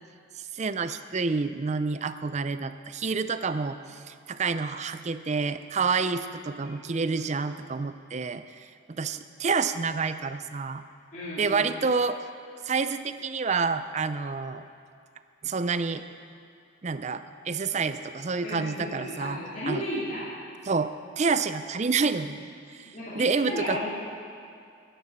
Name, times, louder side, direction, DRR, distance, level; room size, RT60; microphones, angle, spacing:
voice 1, 0.5-8.7 9.0-10.8 11.4-12.2 12.7-14.6 15.4-16.0 16.8-19.4 19.7-19.8 20.7-20.9 21.2-23.8, right 4 dB, 35° right, 11 dB, 0.5 m, -28 dB
voice 2, 11.1-11.7 18.4-20.3 22.8-23.9, equal, 40° left, -11 dB, 2.8 m, -34 dB
11.5 x 10.5 x 7.3 m, 2.4 s
head